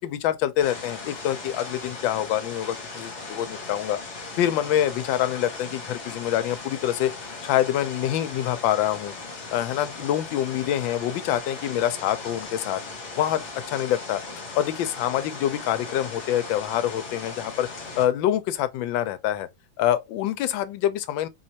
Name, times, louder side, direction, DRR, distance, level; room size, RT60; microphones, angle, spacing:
voice 1, 0.0-4.0 4.4-7.1 7.4-9.1 9.5-12.8 13.2-13.4 13.7-14.2 14.5-17.7 18.0-19.5 19.8-21.3, left 11 dB, 85° left, 1.3 m, -25 dB
sound 1, 0.6-18.1, left 3 dB, 40° left, 1.4 m, -38 dB
4.6 x 3.1 x 2.7 m
omnidirectional pair, 2.1 m